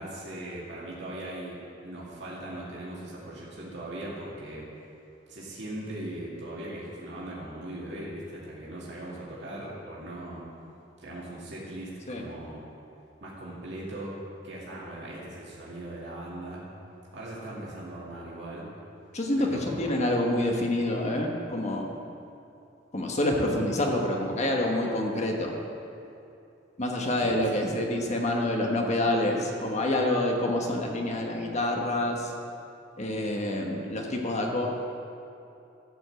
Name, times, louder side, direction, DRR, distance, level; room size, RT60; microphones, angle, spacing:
voice 1, 0.0-4.6 5.3-10.4 11.0-12.6 13.2-14.1 14.4-16.6 17.1-18.7 19.4-19.9 27.1-27.5, right 1 dB, 70° right, -6 dB, 2.3 m, -39 dB
voice 2, 19.1-21.9 22.9-25.5 26.8-32.3 33.0-34.7, left 1 dB, 40° left, 1 dB, 1.3 m, -27 dB
13.0 x 5.3 x 7.7 m, 2.7 s
head